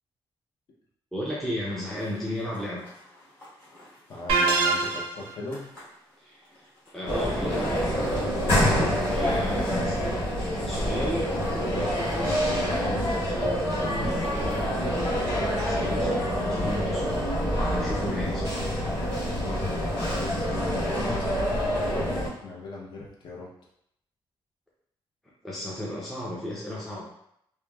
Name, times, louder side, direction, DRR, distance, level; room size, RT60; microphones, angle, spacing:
voice 1, 1.1-2.9 4.6-4.7 6.2-17.3 17.6-18.4 19.8-19.9 25.4-27.0, left 1 dB, 5° left, -6 dB, 0.4 m, -35 dB
Zipper (clothing), 1.7-10.4, left 1 dB, 25° left, 1.3 m, -45 dB
voice 2, 4.1-5.7 19.4-23.5, left 2 dB, 55° left, -3 dB, 0.7 m, -39 dB
sound 1, 4.3-5.3, right 4 dB, 75° right, 0.5 m, -23 dB
sound 2, 7.1-22.3, equal, 85° left, 1.2 m, -26 dB
2.9 x 2.1 x 2.3 m, 0.74 s
cardioid pair, 135°, 9 cm